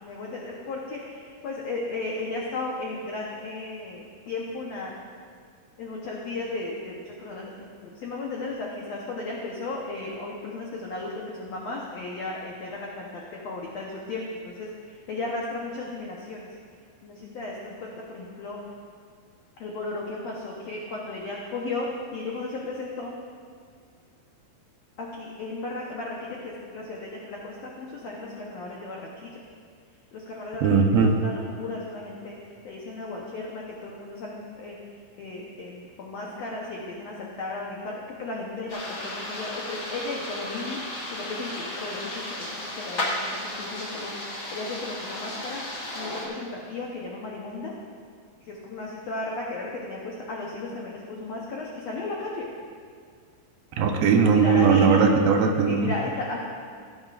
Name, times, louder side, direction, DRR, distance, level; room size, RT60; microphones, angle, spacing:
voice 1, 0.0-5.0 5.8-16.6 17.0-18.6 19.6-23.1 25.0-29.4 30.1-30.7 31.2-32.3 32.6-34.8 35.2-37.9 38.2-45.6 45.9-47.7 48.4-52.5 54.4-55.0 55.6-56.4, left 2 dB, 65° left, -3 dB, 1.7 m, -35 dB
voice 2, 30.6-31.2 53.8-55.9, right 5 dB, 80° right, 3 dB, 2.7 m, -19 dB
sound 1, 38.7-46.3, left 1 dB, 40° left, 1.7 m, -34 dB
16.5 x 9.7 x 2.5 m, 2.1 s
omnidirectional pair, 4.1 m